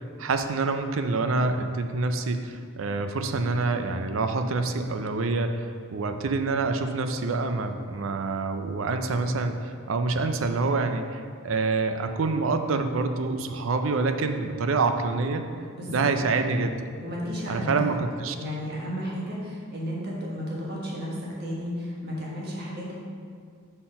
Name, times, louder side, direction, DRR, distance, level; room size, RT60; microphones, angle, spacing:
voice 1, 0.2-15.5 15.9-16.7 17.5-18.4, right 3 dB, 70° right, 7 dB, 0.5 m, -26 dB
voice 2, 15.7-16.1 17.0-17.7 18.4-22.9, equal, 50° right, -4 dB, 1.4 m, -33 dB
5.8 x 4.4 x 5.4 m, 2.2 s
head